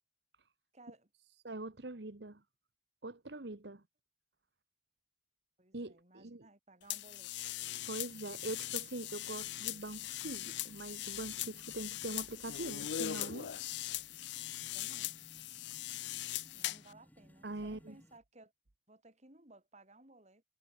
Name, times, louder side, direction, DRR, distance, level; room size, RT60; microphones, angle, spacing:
voice 1, 0.7-1.1 5.6-7.3 14.7-15.1 16.5-18.5 18.9-20.4, right 2 dB, 35° right, 5.4 m, -59 dB
voice 2, 1.4-2.4 3.0-3.8 5.7-6.5 7.9-13.5 17.4-17.9, right 2 dB, 60° right, 1.3 m, -43 dB
sound 1, 6.9-16.9, left 13 dB, 70° left, 0.5 m, -40 dB
sound 2, 7.6-18.2, equal, 10° left, 5.8 m, -63 dB
head